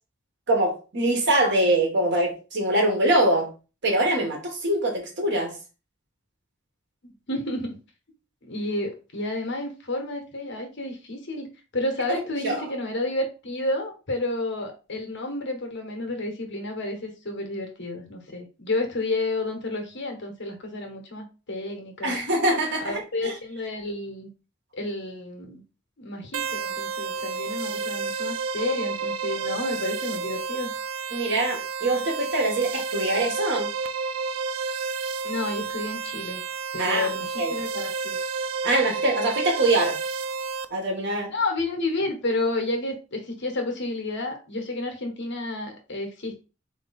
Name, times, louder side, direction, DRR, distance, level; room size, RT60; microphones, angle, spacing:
voice 1, 0.5-3.5 3.8-5.6 12.1-12.2 12.4-12.6 22.0-23.3 31.1-33.7 36.8-37.1 37.4-37.5 38.6-40.0 40.7-41.3, right 1 dB, 60° right, 1.6 m, -23 dB
voice 2, 7.0-7.8 8.4-11.5 11.7-22.2 22.8-24.3 24.7-25.6 26.0-30.7 35.2-36.4 36.7-38.2 41.3-46.4, left 2 dB, 60° left, 1.3 m, -31 dB
sound 1, 26.3-40.7, right 5 dB, 80° right, 0.4 m, -30 dB
4.0 x 3.1 x 4.2 m
head